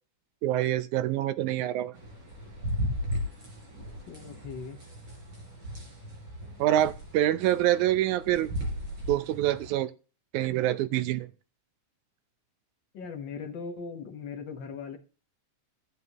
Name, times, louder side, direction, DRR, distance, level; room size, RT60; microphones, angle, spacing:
voice 1, 0.4-2.0 6.6-8.5 9.1-9.9 10.3-11.3, right 13 dB, 80° right, 1.9 m, -26 dB
sound 1, 2.0-9.7, equal, 35° right, 4.6 m, -36 dB
voice 2, 4.1-4.8 12.9-15.0, left 5 dB, 80° left, 1.0 m, -39 dB
13.5 x 8.4 x 2.9 m
omnidirectional pair, 3.8 m